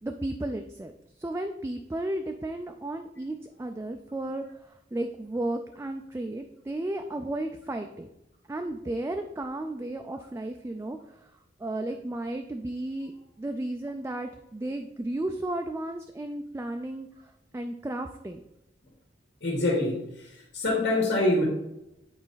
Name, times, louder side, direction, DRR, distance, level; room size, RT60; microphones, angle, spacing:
voice 1, 0.0-8.1 8.5-11.3 11.6-18.4, right 1 dB, 15° right, 5 dB, 0.3 m, -34 dB
voice 2, 19.4-21.4, left 2 dB, 75° left, -3 dB, 2.0 m, -25 dB
8.7 x 4.1 x 4.0 m, 0.87 s
head